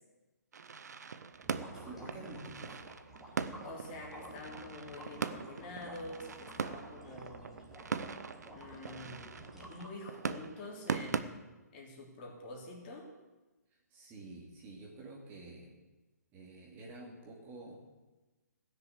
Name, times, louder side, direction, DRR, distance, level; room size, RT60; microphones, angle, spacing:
sound 1, 0.5-11.2, right 6 dB, 70° right, 0.8 m, -41 dB
sound 2, 1.3-10.3, right 1 dB, 5° right, 2.7 m, -52 dB
voice 1, 1.7-2.8 9.0-9.7 13.9-15.8 16.3-17.8, right 2 dB, 20° right, -2 dB, 2.4 m, -49 dB
voice 2, 3.6-7.5 8.5-9.2 9.6-11.4 11.7-13.1, left 2 dB, 35° left, 0 dB, 3.2 m, -47 dB
16.0 x 6.8 x 8.1 m, 1.2 s
hypercardioid pair, 145°, 9 cm